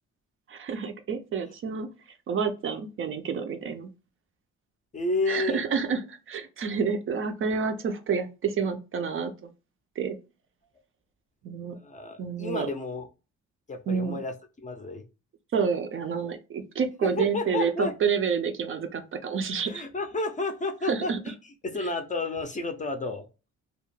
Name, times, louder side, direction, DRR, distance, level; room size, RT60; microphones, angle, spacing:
voice 1, 0.5-1.9 2.3-3.9 5.3-9.3 10.0-10.2 11.4-11.8 12.2-12.7 13.9-14.2 15.5-19.8 20.9-21.2, right 6 dB, 45° right, 7 dB, 0.4 m, -29 dB
voice 2, 4.9-5.6 11.7-13.1 13.7-15.0 17.0-17.9 19.6-23.3, left 3 dB, 25° left, 5 dB, 0.5 m, -31 dB
2.2 x 2.1 x 3.0 m, 0.31 s
cardioid pair, 90°, 30 cm